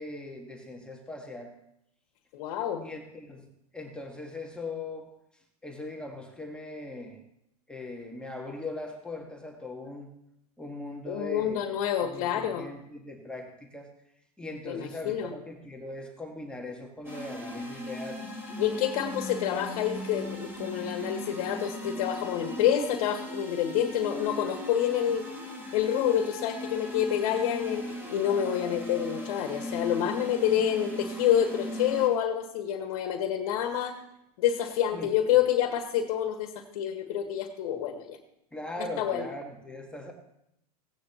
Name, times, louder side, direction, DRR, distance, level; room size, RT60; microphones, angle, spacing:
voice 1, 0.0-1.5 2.8-5.1 5.6-7.2 7.7-10.1 10.6-11.7 12.0-13.9 14.4-18.2 34.9-35.4 38.5-40.1, left 2 dB, 5° left, 1 dB, 1.5 m, -40 dB
voice 2, 2.3-2.8 11.1-12.7 14.6-15.3 18.6-25.3 25.7-34.0 34.4-38.2 38.8-39.3, left 10 dB, 60° left, 4 dB, 1.6 m, -28 dB
sound 1, 17.0-32.1, left 1 dB, 10° right, 3.4 m, -38 dB
17.0 x 9.8 x 2.9 m, 0.80 s
hypercardioid pair, 110°, 20 cm